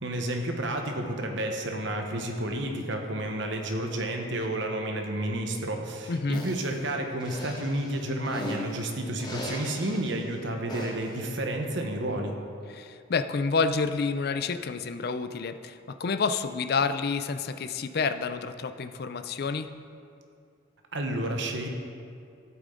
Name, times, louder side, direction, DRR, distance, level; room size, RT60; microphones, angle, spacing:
voice 1, 0.0-12.4 20.9-21.7, right 1 dB, 60° right, 3 dB, 1.1 m, -31 dB
voice 2, 6.1-6.4 12.7-19.7, left 4 dB, 50° left, 10 dB, 0.4 m, -29 dB
sound 1, 6.3-6.7 7.2-8.8 9.2-10.1 10.7-11.1, left 1 dB, 20° left, 1.2 m, -38 dB
12.5 x 8.5 x 3.8 m, 2.4 s
head